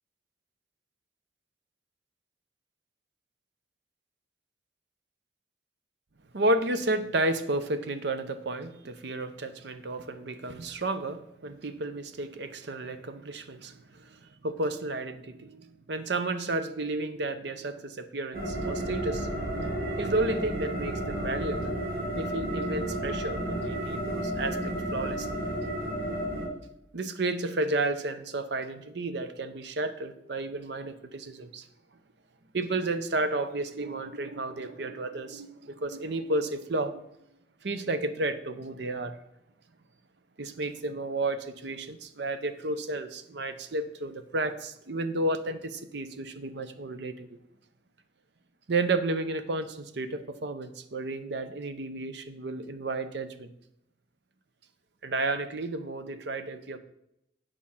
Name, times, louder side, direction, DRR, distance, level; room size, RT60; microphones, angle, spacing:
voice 1, 6.3-19.3 20.0-21.8 22.2-25.4 26.9-31.7 32.5-37.0 37.6-39.2 40.4-47.4 48.7-53.5 55.0-56.8, right 2 dB, 65° right, 11 dB, 0.7 m, -32 dB
sound 1, 18.3-26.5, right 1 dB, 50° right, 1.9 m, -32 dB
8.6 x 4.9 x 5.7 m, 0.82 s
head